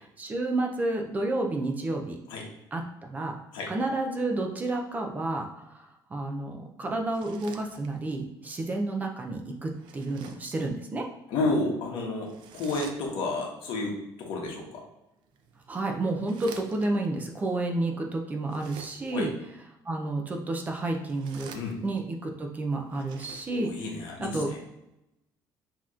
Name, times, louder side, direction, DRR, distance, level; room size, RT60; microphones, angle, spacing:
voice 1, 0.2-2.2 2.7-3.4 3.7-5.8 6.1-11.0 15.7-19.3 19.9-21.5 21.8-23.7 24.2-24.5, right 2 dB, 20° right, 3 dB, 0.5 m, -30 dB
sound 1, 7.0-8.2 9.7-10.6 12.3-13.4 15.2-17.1 18.4-19.3 20.9-22.1 22.8-23.9, right 5 dB, 70° right, 0.5 m, -49 dB
voice 2, 11.3-14.8 19.1-19.3 21.5-21.8 23.6-24.6, left 2 dB, 75° left, 0 dB, 1.1 m, -31 dB
6.1 x 2.9 x 2.4 m, 0.88 s
cardioid pair, 165°, 8 cm